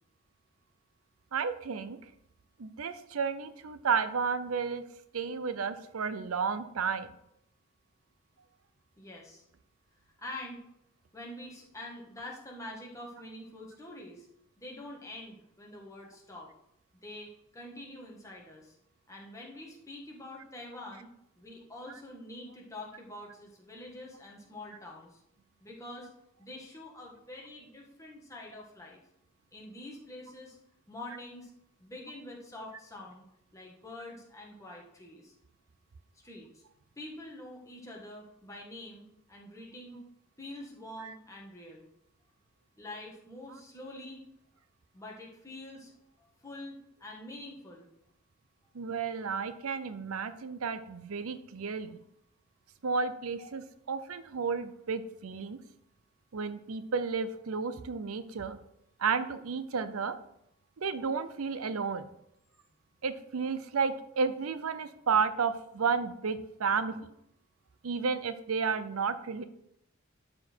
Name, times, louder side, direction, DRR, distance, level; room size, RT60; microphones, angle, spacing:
voice 1, 1.3-2.1 2.6-4.8 5.1-7.1 41.0-41.1 48.7-52.0 52.8-55.6 56.3-58.6 59.0-60.2 60.8-62.0 63.0-67.1 67.8-69.4, right 5 dB, 80° right, 12 dB, 0.6 m, -32 dB
voice 2, 9.0-9.4 10.2-10.6 11.1-14.3 14.6-16.5 17.0-18.8 19.1-21.1 21.4-25.2 25.6-26.1 26.4-29.0 29.5-30.6 30.9-31.5 31.8-33.2 33.5-35.3 36.1-36.6 37.0-40.0 40.4-41.9 42.8-44.2 44.9-45.9 46.2-47.9 53.4-53.5, left 1 dB, 15° left, -2 dB, 1.7 m, -46 dB
12.0 x 4.4 x 4.5 m, 0.77 s
head